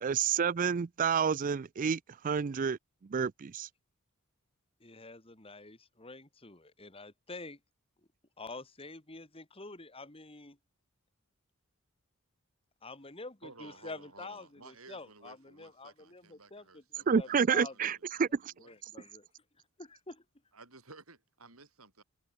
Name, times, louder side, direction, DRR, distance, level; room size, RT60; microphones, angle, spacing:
voice 1, 0.0-2.8 3.1-3.7 17.1-18.5 18.8-18.9, right 6 dB, 40° right, 0.4 m, -29 dB
voice 2, 4.8-7.6 8.4-10.6 12.8-16.8 17.1-17.7 18.6-19.3 19.8-20.2, left 3 dB, 25° left, 2.7 m, -47 dB
voice 3, 13.4-18.7 20.5-22.0, right 3 dB, 80° right, 7.2 m, -55 dB
head